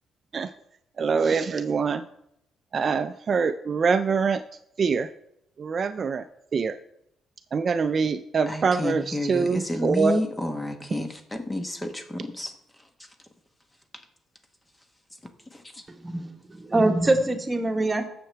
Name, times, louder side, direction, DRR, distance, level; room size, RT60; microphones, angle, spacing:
voice 1, 1.0-2.0 2.7-4.4 4.8-5.1 5.6-6.3 6.5-6.8 7.5-10.2, right 5 dB, 45° right, 10 dB, 0.4 m, -24 dB
voice 2, 8.5-12.5, left 1 dB, 15° left, 6 dB, 1.1 m, -30 dB
voice 3, 15.9-18.1, right 2 dB, 20° right, 4 dB, 1.4 m, -24 dB
16.0 x 6.8 x 3.3 m, 0.80 s
cardioid pair, 90°, 0 cm